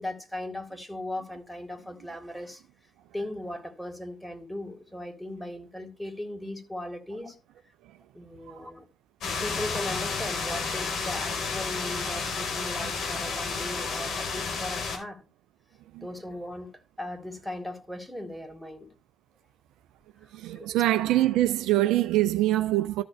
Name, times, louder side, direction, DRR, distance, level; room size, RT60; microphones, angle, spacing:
voice 1, 0.0-2.6 3.1-7.4 8.1-8.9 9.4-15.3 16.0-18.9 20.5-20.8, left 1 dB, 5° left, 3.6 m, -38 dB
sound 1, 9.2-15.0, left 4 dB, 65° left, 3.5 m, -31 dB
voice 2, 20.3-23.0, right 15 dB, 75° right, 0.6 m, -24 dB
14.0 x 6.2 x 3.4 m
hypercardioid pair, 45°, 0 cm